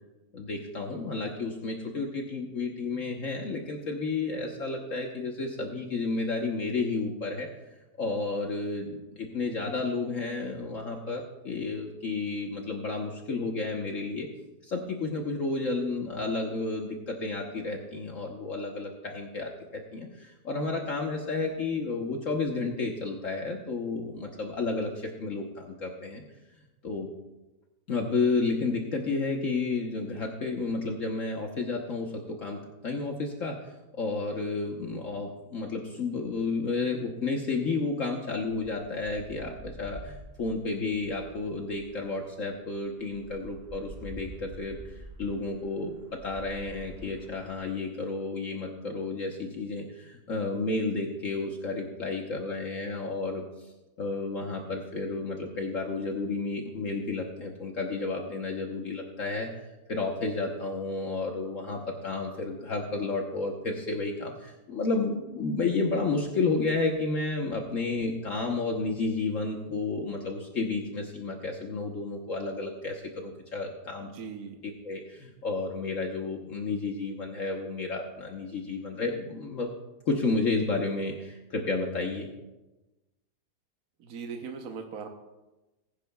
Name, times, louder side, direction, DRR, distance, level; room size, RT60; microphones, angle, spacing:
voice 1, 0.3-7.5 8.0-14.3 14.6-19.5 19.9-26.2 26.8-27.1 27.9-33.6 33.9-53.4 54.0-74.1 74.8-79.7 80.1-82.3, left 3 dB, 55° left, 1 dB, 1.3 m, -31 dB
sound 1, 38.5-47.7, right 1 dB, 10° right, 3.5 m, -47 dB
voice 2, 74.0-74.6 84.0-85.1, right 5 dB, 65° right, 3 dB, 1.4 m, -39 dB
20.5 x 10.5 x 2.3 m, 1.1 s
omnidirectional pair, 1.7 m